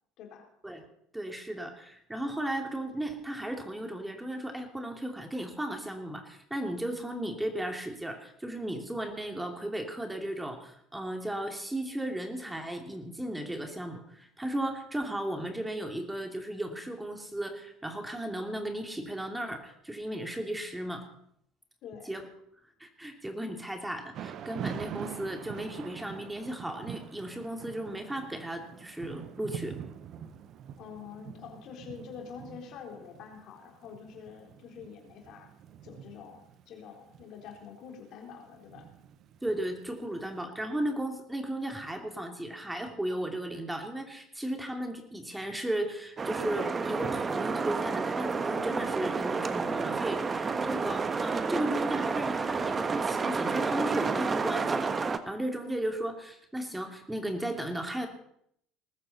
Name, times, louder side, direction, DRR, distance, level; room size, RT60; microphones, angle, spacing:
voice 1, 1.1-21.0 22.1-22.2 22.8-29.7 39.4-58.1, right 1 dB, 10° right, 3 dB, 2.7 m, -35 dB
voice 2, 21.8-22.1 30.8-35.5 35.8-38.9, left 6 dB, 55° left, 2 dB, 4.0 m, -46 dB
Thunder / Rain, 24.1-40.2, right 8 dB, 50° right, 1.0 m, -44 dB
sound 1, 46.2-55.2, right 4 dB, 30° right, 1.3 m, -30 dB
20.0 x 14.5 x 4.3 m, 0.70 s
hypercardioid pair, 65°, 0 cm